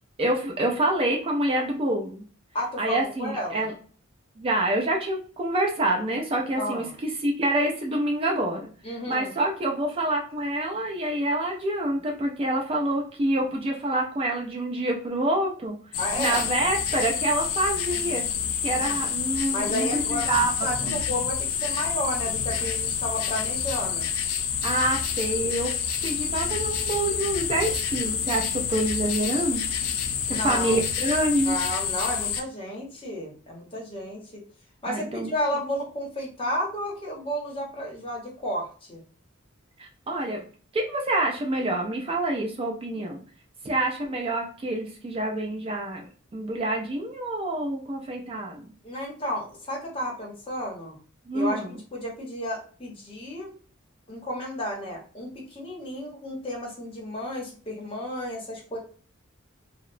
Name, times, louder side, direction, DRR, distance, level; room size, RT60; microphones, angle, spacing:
voice 1, 0.2-2.2 2.8-3.7 4.4-8.7 9.1-15.8 16.2-18.2 18.6-20.5 20.8-21.0 24.6-25.7 26.0-29.6 30.3-31.6 34.9-35.3 39.8-40.4 40.7-43.2 43.6-46.1 46.3-48.7 51.3-51.7, right 1 dB, 25° right, 1 dB, 0.3 m, -27 dB
voice 2, 2.5-3.6 6.6-6.9 8.8-9.4 16.0-16.5 18.9-19.0 19.5-20.3 20.6-24.1 30.3-30.8 31.4-34.4 34.8-39.0 48.8-51.0 51.3-53.5 54.1-58.8, equal, 25° left, -2 dB, 0.8 m, -32 dB
sound 1, 15.9-32.4, left 7 dB, 85° left, 0.4 m, -28 dB
2.8 x 2.0 x 2.4 m, 0.42 s
head